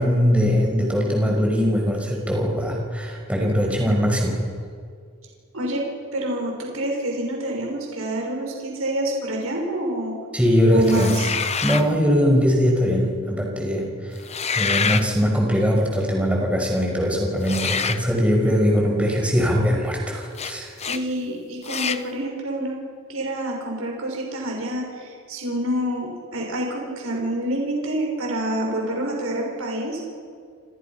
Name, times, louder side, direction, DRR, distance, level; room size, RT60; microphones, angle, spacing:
voice 1, 0.0-4.4 10.3-11.1 11.6-14.1 14.5-20.7, equal, 5° right, -1 dB, 5.8 m, -21 dB
voice 2, 6.1-10.2 10.7-11.3 20.8-22.8 23.1-30.0, right 1 dB, 75° right, 0 dB, 6.4 m, -27 dB
sound 1, 10.8-11.9 14.2-15.1 17.4-18.0 20.3-20.5 20.8-21.0 21.6-22.0, left 6 dB, 30° left, 0.9 m, -26 dB
28.5 x 28.0 x 6.0 m, 2.1 s
head